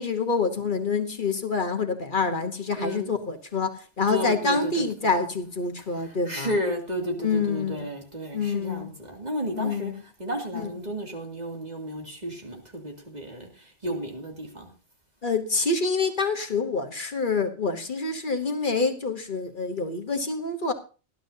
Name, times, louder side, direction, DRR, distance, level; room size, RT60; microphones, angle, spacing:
voice 1, 0.0-6.6 7.2-7.9 8.3-8.9 9.5-10.0 10.5-10.7 15.2-20.7, left 4 dB, 50° left, 1.3 m, -27 dB
voice 2, 2.8-3.1 4.1-4.7 6.3-9.9 10.2-13.5 13.8-14.7, equal, 40° right, 2.7 m, -32 dB
19.5 x 11.5 x 2.8 m
omnidirectional pair, 1.1 m